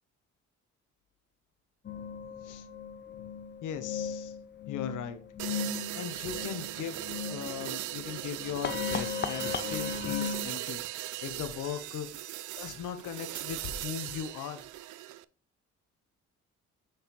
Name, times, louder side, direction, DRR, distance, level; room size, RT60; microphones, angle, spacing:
sound 1, 1.8-10.4, left 7 dB, 35° left, 0.7 m, -37 dB
voice 1, 3.6-4.3 4.7-5.2 5.9-14.7, left 8 dB, 85° left, 9 dB, 1.1 m, -39 dB
sound 2, 5.4-15.2, right 15 dB, 80° right, 0.6 m, -39 dB
6.5 x 6.4 x 3.1 m, 0.37 s
cardioid pair, 90°, 30 cm